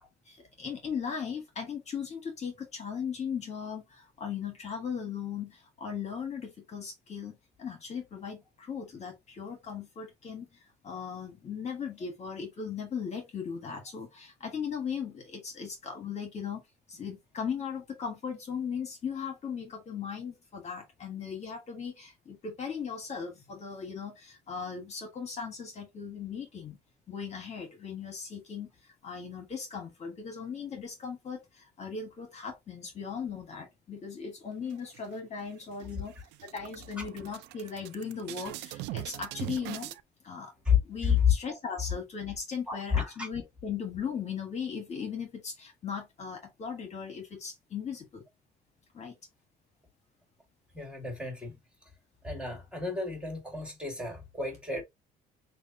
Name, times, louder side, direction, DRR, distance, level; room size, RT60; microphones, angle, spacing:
voice 1, 0.2-16.6 16.9-26.8 27.1-36.1 36.4-40.0 40.2-40.5 40.8-48.2 48.9-49.1, left 6 dB, 40° left, 1.4 m, -38 dB
sound 1, 34.7-35.4 35.8-35.9 36.2-40.0, right 17 dB, 90° right, 0.4 m, -41 dB
voice 2, 41.0-41.6 42.7-43.3 50.7-51.6 52.2-54.8, left 7 dB, 5° right, 2.1 m, -29 dB
6.2 x 2.4 x 2.7 m
cardioid pair, 110°, 17 cm